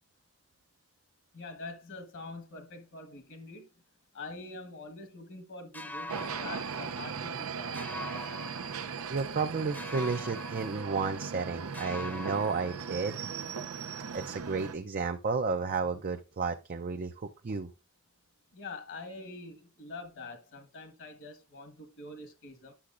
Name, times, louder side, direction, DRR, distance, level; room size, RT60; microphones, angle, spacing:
voice 1, 1.3-3.7 4.1-7.8 18.5-22.7, left 3 dB, 60° left, 1.4 m, -45 dB
sound 1, 5.7-7.5 7.7-9.4 9.7-11.5 11.7-13.4, left 2 dB, 10° left, 0.7 m, -44 dB
sound 2, 6.1-14.7, right 6 dB, 85° right, 0.6 m, -38 dB
voice 2, 9.1-13.3 14.1-17.7, right 4 dB, 40° right, 0.5 m, -32 dB
9.9 x 6.8 x 2.5 m
head